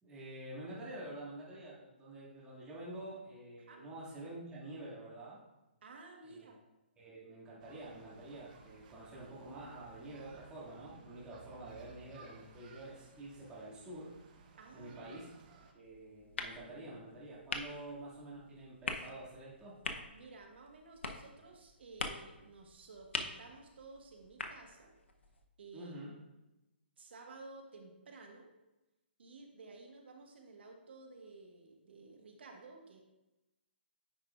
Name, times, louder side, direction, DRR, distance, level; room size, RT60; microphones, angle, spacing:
voice 1, 0.0-5.4 6.2-6.5 7.0-14.1 14.7-15.3 15.7-19.7 25.7-26.1, right 1 dB, 15° right, -8 dB, 2.0 m, -48 dB
voice 2, 5.8-6.6 14.6-15.2 20.1-24.9 25.6-26.0 27.0-28.5 29.2-33.0, right 3 dB, 70° right, 3 dB, 1.3 m, -54 dB
sound 1, 7.6-15.7, right 5 dB, 45° right, 0.8 m, -59 dB
sound 2, 15.8-25.4, left 3 dB, 80° left, 0.7 m, -45 dB
9.5 x 4.8 x 2.4 m, 0.99 s
hypercardioid pair, 140°, 6 cm